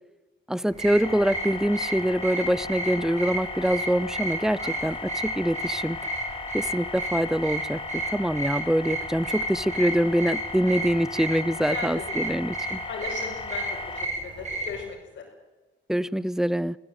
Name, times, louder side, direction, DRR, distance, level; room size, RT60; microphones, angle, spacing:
voice 1, 0.5-6.0 6.5-12.8 15.9-16.8, equal, 5° right, 20 dB, 0.7 m, -25 dB
sound 1, 0.7-14.8, right 2 dB, 35° right, 6.7 m, -33 dB
sound 2, 1.0-14.1, left 3 dB, 25° left, 1.7 m, -37 dB
voice 2, 11.7-12.4 12.9-13.6 14.2-15.2, left 5 dB, 70° left, -4 dB, 5.7 m, -37 dB
24.0 x 17.0 x 9.2 m, 1.1 s
cardioid pair, 90°, 20 cm